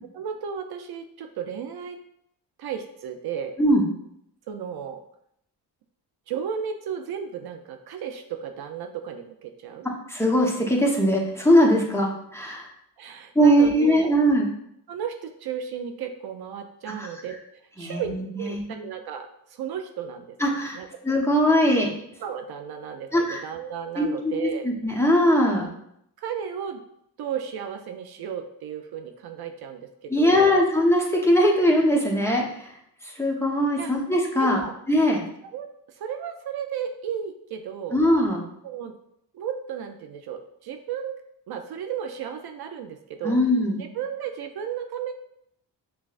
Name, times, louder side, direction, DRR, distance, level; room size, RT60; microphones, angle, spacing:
voice 1, 0.1-2.0 2.6-3.6 4.5-5.0 6.3-9.9 13.0-14.1 14.9-17.4 17.8-20.4 20.7-20.9 22.2-24.7 26.2-26.8 27.2-30.5 33.8-33.9 34.4-34.8 35.5-38.0 38.6-39.0 39.3-41.1 41.5-43.4 43.8-45.1, right 8 dB, 65° right, 6 dB, 0.5 m, -34 dB
voice 2, 10.1-12.7 13.3-14.5 17.0-17.1 17.8-18.6 20.4-20.8 21.0-21.9 23.1-23.4 24.0-25.7 30.1-32.7 33.0-34.6 34.9-35.2 37.9-38.4 43.2-43.8, equal, 5° left, -2 dB, 0.9 m, -21 dB
6.1 x 2.2 x 2.4 m, 0.74 s
cardioid pair, 75°, 42 cm